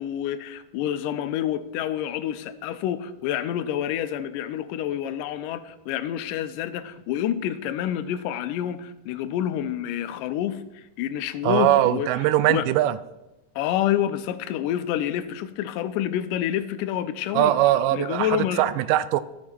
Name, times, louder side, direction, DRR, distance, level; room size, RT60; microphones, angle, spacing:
voice 1, 0.0-12.7 13.6-17.6 17.9-18.6, left 11 dB, 85° left, 12 dB, 2.2 m, -28 dB
voice 2, 11.4-13.0 17.3-19.2, right 13 dB, 90° right, 15 dB, 2.1 m, -21 dB
14.5 x 6.2 x 4.4 m, 0.95 s
omnidirectional pair, 3.7 m